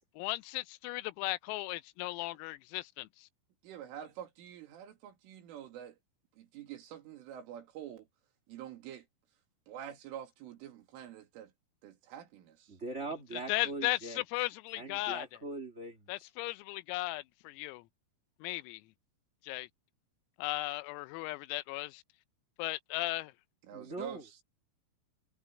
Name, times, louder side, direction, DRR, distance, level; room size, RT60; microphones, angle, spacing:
voice 1, 0.2-3.3 13.5-15.3 16.1-17.9 18.4-18.8 19.4-19.7 20.4-22.0 22.6-23.3, left 19 dB, 90° left, 3.5 m, -36 dB
voice 2, 3.6-6.0 6.4-8.1 8.5-9.1 9.7-11.5 11.8-12.8 23.7-24.2, right 10 dB, 70° right, 5.1 m, -46 dB
voice 3, 12.7-14.2 14.7-16.1 23.7-24.4, right 2 dB, 40° right, 0.9 m, -41 dB
omnidirectional pair, 6.0 m